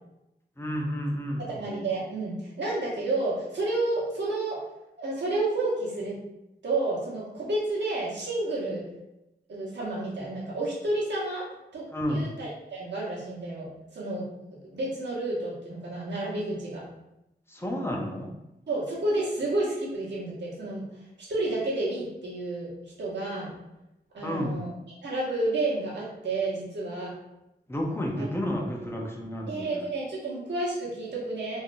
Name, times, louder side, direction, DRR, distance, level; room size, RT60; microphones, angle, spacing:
voice 1, 0.6-1.5 11.9-12.2 17.5-18.3 24.2-24.6 27.7-29.8, equal, 15° left, 1 dB, 0.6 m, -31 dB
voice 2, 1.5-4.6 5.0-6.2 6.6-8.9 9.5-11.5 11.7-14.3 14.7-16.8 18.7-20.8 21.3-23.5 24.1-24.7 25.0-27.1 28.2-28.3 29.5-31.6, right 2 dB, 85° right, -6 dB, 1.0 m, -30 dB
3.1 x 2.7 x 2.5 m, 0.91 s
wide cardioid pair, 70°, 18 cm